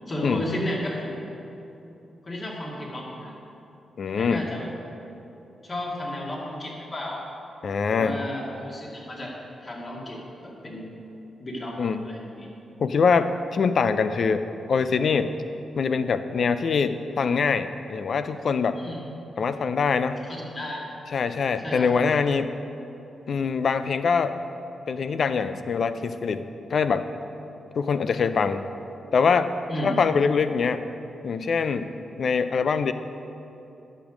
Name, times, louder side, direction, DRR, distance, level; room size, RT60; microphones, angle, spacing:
voice 1, 0.1-1.3 2.2-3.4 4.2-4.7 5.6-7.3 7.9-9.4 9.6-10.9 11.4-11.8 12.0-12.5 18.8-19.0 20.2-20.9 21.6-21.9 29.7-30.1, left 1 dB, 45° left, -3 dB, 2.2 m, -33 dB
voice 2, 4.0-4.4 7.6-8.2 11.8-12.0 12.8-15.3 15.8-18.8 19.4-20.2 21.1-22.5 23.3-24.4 24.9-27.1 27.8-28.6 29.1-29.5 29.8-30.8 31.2-31.9 32.2-32.9, left 5 dB, 65° left, 11 dB, 0.4 m, -24 dB
10.0 x 6.4 x 5.1 m, 3.0 s
supercardioid pair, 45°, 0 cm